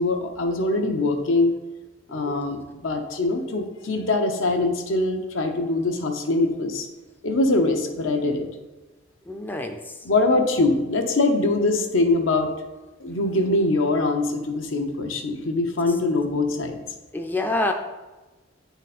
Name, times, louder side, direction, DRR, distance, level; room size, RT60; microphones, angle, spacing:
voice 1, 0.0-1.5 2.1-6.9 7.2-8.5 10.0-12.5 13.0-16.8, left 2 dB, 80° left, 4 dB, 0.8 m, -23 dB
voice 2, 9.3-10.1 15.9-16.0 17.1-17.7, left 2 dB, 10° left, 3 dB, 0.4 m, -28 dB
9.0 x 4.0 x 4.2 m, 1.2 s
head